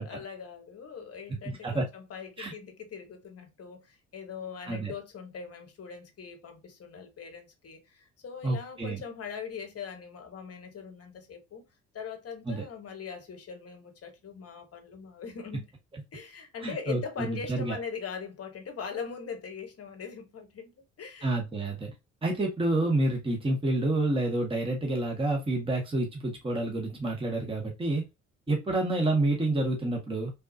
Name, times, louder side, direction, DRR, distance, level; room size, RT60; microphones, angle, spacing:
voice 1, 0.0-11.7 11.9-15.6 16.1-21.8, left 6 dB, 40° left, 1.1 m, -41 dB
voice 2, 8.4-9.0 12.5-12.6 16.6-17.8 21.2-21.9 22.2-28.0 28.5-30.3, right 2 dB, 15° right, 0.9 m, -28 dB
3.5 x 2.3 x 2.6 m
figure-of-eight pair, 45°, 38 cm